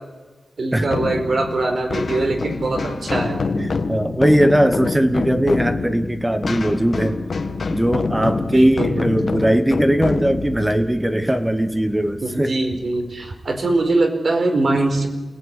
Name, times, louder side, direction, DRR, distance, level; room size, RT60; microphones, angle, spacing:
voice 1, 0.6-3.4 8.4-9.1 12.2-15.1, right 2 dB, 55° right, 4 dB, 4.4 m, -22 dB
sound 1, 0.8-12.2, left 4 dB, 55° left, 1.6 m, -26 dB
voice 2, 3.5-7.2 7.7-12.5, right 1 dB, 10° right, 9 dB, 1.1 m, -19 dB
28.5 x 19.0 x 9.8 m, 1.2 s
wide cardioid pair, 145°, 0 cm